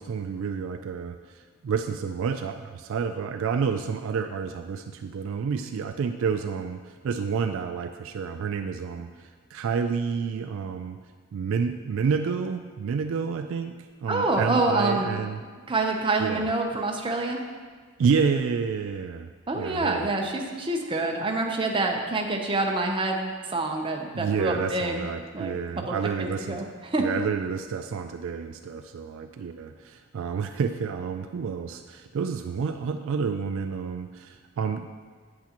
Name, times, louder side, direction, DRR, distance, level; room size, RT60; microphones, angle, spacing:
voice 1, 0.0-11.0 11.3-15.4 16.2-16.5 18.0-19.3 19.5-20.1 24.1-26.7 27.0-34.9, right 6 dB, 60° right, 7 dB, 0.3 m, -29 dB
voice 2, 14.1-15.1 15.7-17.4 19.5-25.1 25.3-27.0, right 2 dB, 25° right, 1 dB, 0.7 m, -27 dB
8.6 x 8.1 x 2.9 m, 1.5 s
head